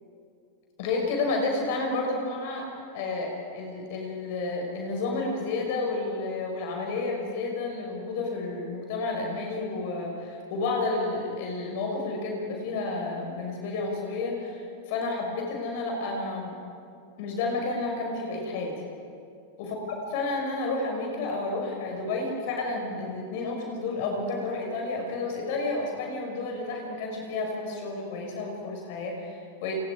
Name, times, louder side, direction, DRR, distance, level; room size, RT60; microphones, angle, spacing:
voice 1, 0.8-2.7 2.9-16.5 17.2-18.7 19.6-19.8 20.1-29.7, left 3 dB, 50° left, 1 dB, 5.6 m, -31 dB
29.0 x 29.0 x 5.0 m, 2.5 s
figure-of-eight pair, 90°, 0 cm